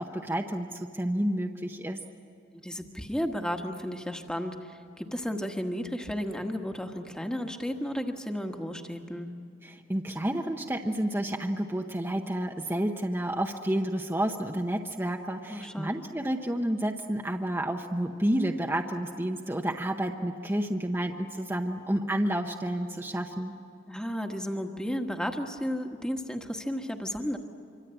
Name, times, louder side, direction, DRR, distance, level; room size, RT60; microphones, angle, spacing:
voice 1, 0.0-2.0 9.6-23.5, right 1 dB, 10° right, 3 dB, 0.8 m, -30 dB
voice 2, 2.6-9.3 15.5-16.0 23.9-27.4, equal, 5° left, 4 dB, 1.3 m, -33 dB
26.0 x 25.0 x 8.9 m, 2.4 s
head